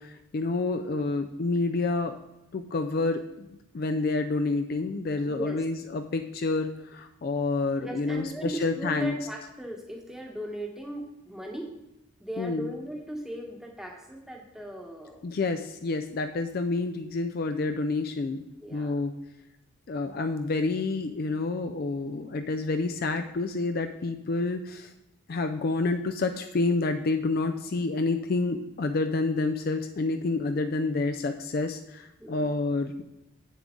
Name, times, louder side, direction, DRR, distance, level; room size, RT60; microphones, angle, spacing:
voice 1, 0.0-2.2 2.5-3.5 3.7-9.1 12.4-12.7 15.2-18.4 18.7-19.1 19.9-24.9 25.3-33.0, left 3 dB, 45° left, 7 dB, 0.4 m, -28 dB
voice 2, 5.2-5.6 7.8-11.7 12.2-15.2 18.6-19.0 32.2-32.6, equal, ahead, 0 dB, 1.1 m, -38 dB
8.3 x 7.1 x 3.7 m, 0.91 s
head